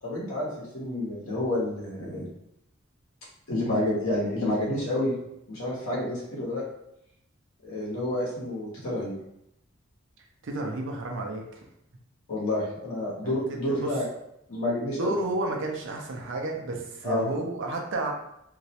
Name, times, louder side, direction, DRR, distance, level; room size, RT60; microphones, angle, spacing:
voice 1, 0.0-2.3 3.5-5.1 5.5-6.6 7.6-9.1 12.3-14.1 14.5-15.2 17.0-17.3, left 1 dB, 75° left, -5 dB, 0.8 m, -29 dB
voice 2, 10.4-11.4 13.2-13.9 15.0-18.1, right 2 dB, 65° right, 1 dB, 0.5 m, -31 dB
2.3 x 2.0 x 2.7 m, 0.78 s
head